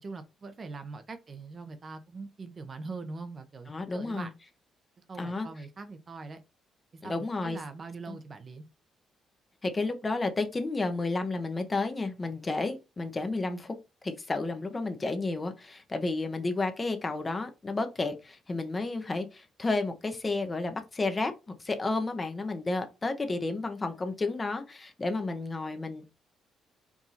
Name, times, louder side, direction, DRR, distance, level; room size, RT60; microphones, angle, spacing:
voice 1, 0.0-4.3 5.1-6.4 7.0-8.7, right 4 dB, 40° right, 0.7 m, -42 dB
voice 2, 3.7-4.3 5.2-5.5 7.0-7.6 8.1-8.2 9.6-13.7 14.0-26.1, left 3 dB, 25° left, 0.9 m, -31 dB
4.7 x 2.6 x 4.1 m
cardioid pair, 90°, 0 cm